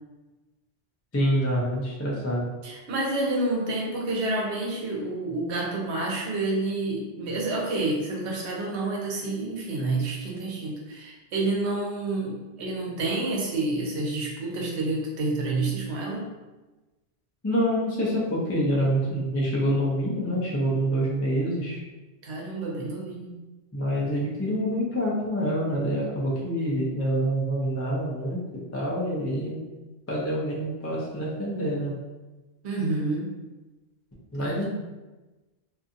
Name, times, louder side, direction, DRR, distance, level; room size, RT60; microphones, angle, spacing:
voice 1, 1.1-2.5 17.4-21.8 23.7-28.4 28.7-29.6 30.1-31.9 34.3-34.7, equal, 20° left, -5 dB, 0.4 m, -26 dB
voice 2, 2.6-16.3 22.2-23.4 32.6-33.3 34.4-34.7, right 2 dB, 80° right, -2 dB, 1.0 m, -29 dB
2.6 x 2.5 x 2.5 m, 1.1 s
omnidirectional pair, 1.1 m